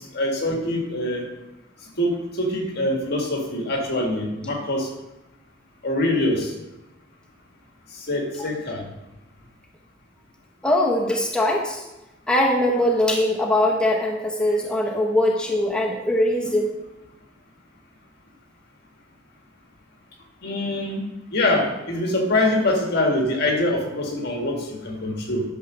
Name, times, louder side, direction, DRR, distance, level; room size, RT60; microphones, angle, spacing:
voice 1, 0.1-1.3 2.0-4.9 5.8-6.5 8.1-8.9 20.4-21.0 21.3-25.4, left 1 dB, 55° left, 1 dB, 1.9 m, -24 dB
voice 2, 10.6-11.8 12.3-16.7, left 1 dB, 5° left, -2 dB, 1.0 m, -21 dB
11.5 x 4.7 x 6.3 m, 0.96 s
head